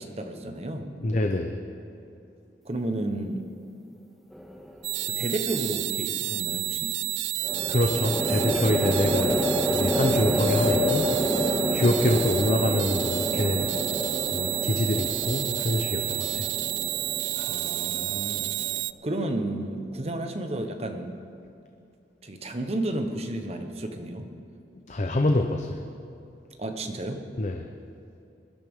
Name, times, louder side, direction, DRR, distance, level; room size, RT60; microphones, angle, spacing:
voice 1, 0.0-1.0 2.6-3.5 5.0-7.0 11.9-12.0 17.3-18.5 19.0-21.2 22.2-24.3 26.6-27.2, right 1 dB, 35° right, 5 dB, 1.0 m, -32 dB
voice 2, 1.0-1.6 7.7-11.1 11.7-13.7 14.3-16.5 24.9-25.8 27.4-27.7, left 1 dB, 40° left, 4 dB, 0.6 m, -26 dB
sound 1, 4.3-4.9 7.4-18.8, equal, ahead, 0.7 m, -28 dB
sound 2, 4.8-18.9, right 17 dB, 85° right, 0.3 m, -30 dB
21.0 x 12.0 x 3.6 m, 2.6 s
head